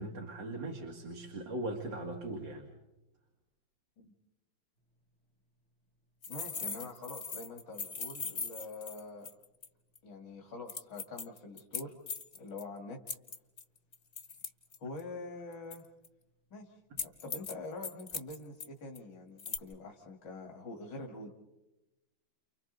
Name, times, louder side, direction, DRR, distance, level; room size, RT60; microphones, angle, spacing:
voice 1, 0.0-2.7, right 2 dB, 75° right, 1 dB, 3.0 m, -39 dB
sound 1, 6.2-9.7 9.9-10.0 10.7-12.6 13.1-15.0 15.7-16.1 17.0-17.5 17.8-18.7 18.9-19.0 19.4-19.6, left 5 dB, 40° left, 1.5 m, -40 dB
voice 2, 6.3-9.3 10.0-12.0 12.4-13.0 14.8-15.9 16.5-21.3, left 3 dB, 70° left, 1 dB, 2.6 m, -45 dB
30.0 x 29.0 x 4.0 m, 0.99 s
omnidirectional pair, 2.0 m